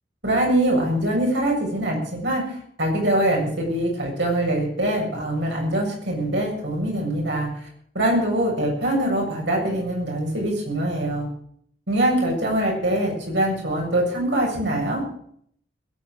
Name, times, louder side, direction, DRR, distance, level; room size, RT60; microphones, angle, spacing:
voice 1, 0.2-7.7 7.9-11.3 11.9-15.0, right 1 dB, 70° right, -1 dB, 7.5 m, -23 dB
21.0 x 9.4 x 6.5 m, 0.63 s
head